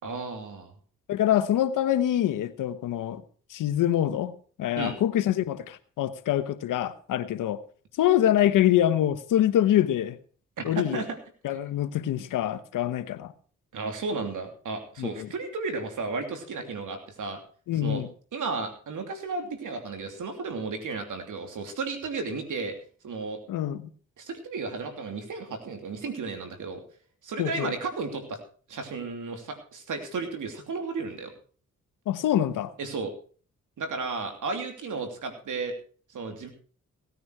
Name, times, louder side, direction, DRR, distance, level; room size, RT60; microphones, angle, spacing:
voice 1, 0.0-0.7 4.8-5.0 10.6-11.2 13.7-17.4 17.8-18.0 18.3-22.7 23.0-23.4 24.2-26.8 27.2-28.4 28.7-31.3 32.8-33.1 33.8-35.7 36.1-36.5, right 4 dB, 75° right, 3.0 m, -33 dB
voice 2, 1.1-3.2 3.5-7.6 8.0-10.2 10.6-11.0 11.4-13.3 15.0-15.3 17.7-18.1 23.5-23.9 27.4-27.7 32.1-32.7, left 11 dB, 90° left, 1.0 m, -25 dB
17.0 x 9.4 x 4.7 m
supercardioid pair, 50°, 31 cm